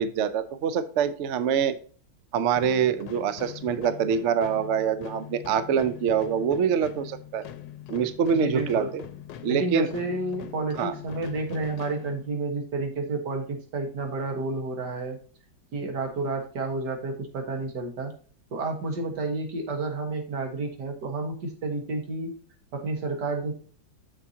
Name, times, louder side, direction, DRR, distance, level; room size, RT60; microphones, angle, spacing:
voice 1, 0.0-1.8 2.3-7.4 7.9-9.0 9.4-9.9 10.8-10.9, right 7 dB, 80° right, 13 dB, 0.6 m, -25 dB
sound 1, 2.5-12.7, left 11 dB, 75° left, 1.2 m, -43 dB
voice 2, 8.3-8.9 9.5-15.2 15.7-18.1 18.5-22.3 22.7-23.5, right 3 dB, 65° right, 3 dB, 2.0 m, -30 dB
7.2 x 6.9 x 2.8 m, 0.42 s
omnidirectional pair, 2.0 m